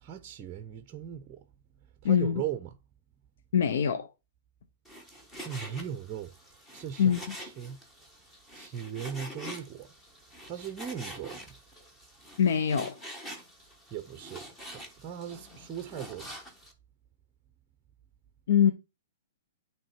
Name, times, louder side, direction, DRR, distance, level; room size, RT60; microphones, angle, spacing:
voice 1, 0.0-1.4 2.0-2.7 5.4-6.3 6.7-7.8 8.5-9.9 10.4-11.5 13.9-14.4 14.7-16.3, right 9 dB, 25° right, 0.6 m, -38 dB
voice 2, 2.0-2.4 3.5-4.1 7.0-7.3 12.4-12.9 18.5-18.7, left 8 dB, 70° left, 0.7 m, -24 dB
Frying (food), 4.8-16.7, equal, 10° left, 1.3 m, -46 dB
8.8 x 3.2 x 4.7 m
hypercardioid pair, 145°, 0 cm